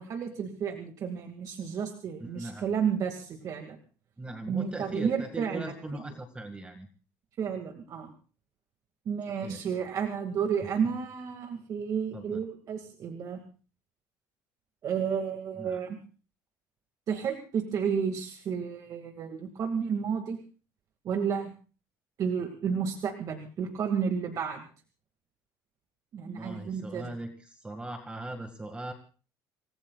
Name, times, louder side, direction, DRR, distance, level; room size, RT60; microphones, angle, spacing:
voice 1, 0.0-3.8 4.5-6.0 7.4-8.1 9.1-13.4 14.8-16.0 17.1-20.4 21.0-21.5 22.2-24.7 26.1-27.2, right 7 dB, 45° right, 5 dB, 2.2 m, -31 dB
voice 2, 2.2-2.7 4.2-6.9 9.4-9.6 12.1-12.4 15.6-15.8 26.2-28.9, right 2 dB, 15° right, 6 dB, 2.0 m, -39 dB
27.5 x 19.5 x 2.4 m, 0.37 s
cardioid pair, 130°, 8 cm